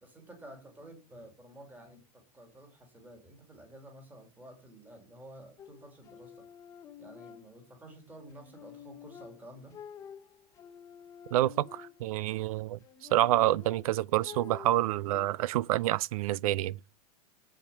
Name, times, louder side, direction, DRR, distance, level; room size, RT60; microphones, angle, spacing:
voice 1, 0.0-6.5 7.0-9.8, right 1 dB, 10° right, 2.5 m, -51 dB
sound 1, 5.6-7.9 8.3-12.3 12.8-15.3, left 8 dB, 15° left, 0.6 m, -50 dB
voice 2, 11.3-12.8 13.1-16.8, right 15 dB, 65° right, 0.4 m, -28 dB
7.9 x 7.3 x 5.5 m
supercardioid pair, 170°, 19 cm